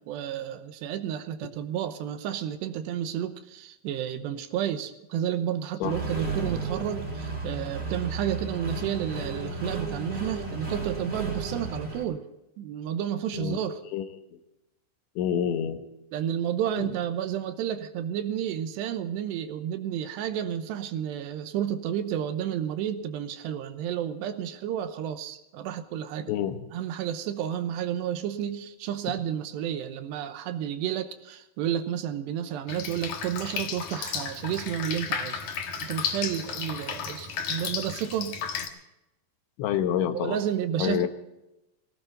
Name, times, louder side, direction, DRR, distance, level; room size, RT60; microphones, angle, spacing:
voice 1, 0.1-12.2 12.6-13.8 16.1-26.3 26.7-35.4 35.8-38.4 40.1-41.1, right 10 dB, 75° right, 9 dB, 2.9 m, -31 dB
Accelerating revving vroom, 5.8-12.0, right 3 dB, 25° right, 3.9 m, -33 dB
voice 2, 15.2-15.8 16.8-16.9 26.3-26.6 39.6-40.4 40.8-41.1, left 9 dB, 85° left, 7 dB, 3.6 m, -27 dB
Drip, 32.7-38.7, left 6 dB, 65° left, 2.0 m, -33 dB
19.0 x 17.0 x 3.9 m, 0.93 s
omnidirectional pair, 5.3 m